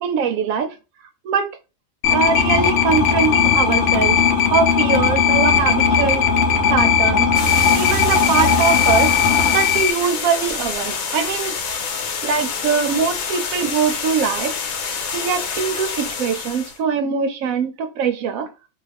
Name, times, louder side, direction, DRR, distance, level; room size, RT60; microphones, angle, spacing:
voice 1, 0.0-0.7 1.2-1.5 2.1-4.2 4.5-6.2 6.7-7.3 7.8-9.1 9.5-11.5 12.2-14.6 15.1-18.5, right 6 dB, 85° right, 1.0 m, -22 dB
sound 1, 2.0-9.9, left 6 dB, 65° left, 0.7 m, -17 dB
sound 2, 7.3-16.8, left 5 dB, 80° left, 1.1 m, -27 dB
2.4 x 2.4 x 3.3 m
omnidirectional pair, 1.4 m